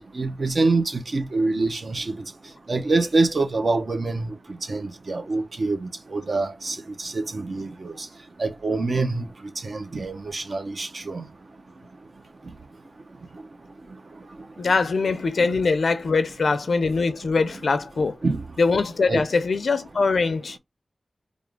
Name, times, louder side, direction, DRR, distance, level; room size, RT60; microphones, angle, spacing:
voice 1, 0.1-2.1 2.7-4.3 4.7-7.9 8.4-9.2 9.6-11.2 18.2-18.4 19.1-19.2, right 3 dB, 60° right, 0.8 m, -25 dB
voice 2, 14.6-18.2 18.6-20.6, left 4 dB, 85° left, 0.5 m, -22 dB
3.4 x 2.5 x 3.5 m
wide cardioid pair, 100°, 0 cm